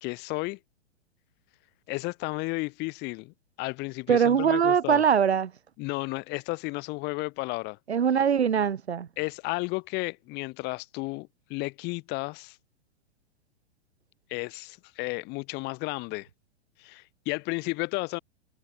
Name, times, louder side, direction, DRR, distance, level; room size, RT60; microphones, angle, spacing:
voice 1, 0.0-0.6 1.9-5.0 5.8-7.8 9.2-12.6 14.3-16.3 16.8-18.2, left 25 dB, 35° left, 1.1 m, -33 dB
voice 2, 4.1-5.5 7.9-9.1, right 7 dB, 90° right, 0.6 m, -22 dB
figure-of-eight pair, 110°, 32 cm